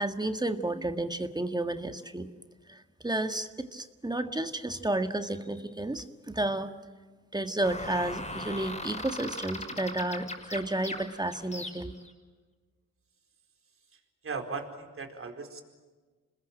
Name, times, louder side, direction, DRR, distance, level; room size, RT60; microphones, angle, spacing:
voice 1, 0.0-2.3 2.7-6.7 7.3-11.9, right 1 dB, 15° right, 8 dB, 1.7 m, -32 dB
sound 1, 7.6-12.1, left 1 dB, 20° left, 6.0 m, -39 dB
voice 2, 13.9-15.6, right 4 dB, 40° right, 5 dB, 4.5 m, -38 dB
26.5 x 21.0 x 9.0 m, 1.4 s
supercardioid pair, 65°, 32 cm